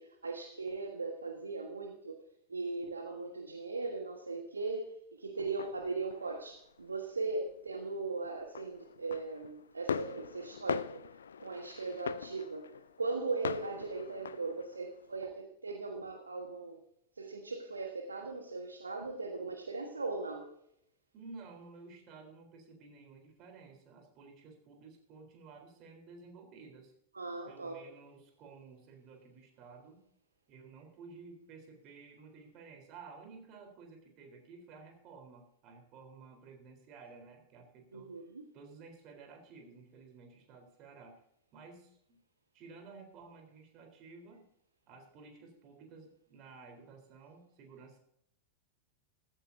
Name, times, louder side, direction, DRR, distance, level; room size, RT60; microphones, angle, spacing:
voice 1, 0.0-2.2 2.5-11.0 11.4-12.7 13.0-16.8 17.2-20.5 27.1-27.8 37.9-38.4, right 3 dB, 75° right, 3 dB, 1.4 m, -39 dB
sound 1, 5.6-6.9 7.3-7.8 8.1-15.2, left 7 dB, 70° left, 0.4 m, -42 dB
voice 2, 21.1-26.9 27.5-30.0 30.5-38.1 38.5-41.2 41.5-42.2 42.5-44.5 44.9-48.0, right 4 dB, 40° right, 4 dB, 3.8 m, -53 dB
15.5 x 14.5 x 2.7 m, 0.74 s
figure-of-eight pair, 90°, 0 cm